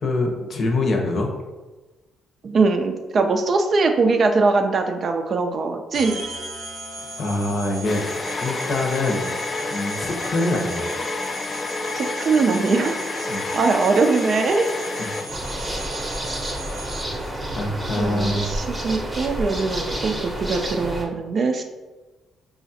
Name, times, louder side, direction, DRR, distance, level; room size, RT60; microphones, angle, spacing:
voice 1, 0.0-1.3 7.2-8.1 8.4-9.3 9.7-10.8 13.3-13.5 15.0-15.1 17.2-18.6, left 2 dB, 55° left, 2 dB, 0.7 m, -25 dB
voice 2, 2.4-6.2 11.9-14.7 18.0-21.6, right 4 dB, 50° right, 5 dB, 0.4 m, -21 dB
sound 1, 5.9-17.3, right 1 dB, 85° right, 0.8 m, -37 dB
sound 2, 7.0-15.7, left 2 dB, 30° left, 0.3 m, -30 dB
sound 3, 15.3-21.1, right 1 dB, 20° right, 0.7 m, -29 dB
5.0 x 2.4 x 2.7 m, 1.2 s
cardioid pair, 90°, 0 cm